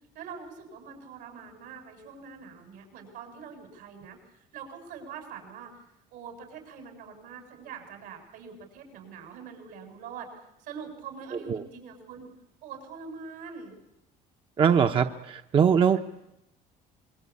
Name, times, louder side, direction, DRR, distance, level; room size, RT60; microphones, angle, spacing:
voice 1, 0.1-5.7 6.1-12.3 12.6-13.8 15.9-16.0, right 6 dB, 85° right, 4 dB, 7.7 m, -44 dB
voice 2, 14.6-16.0, right 7 dB, 35° right, 7 dB, 0.9 m, -22 dB
26.0 x 23.0 x 8.5 m, 0.89 s
cardioid pair, 140°, 16 cm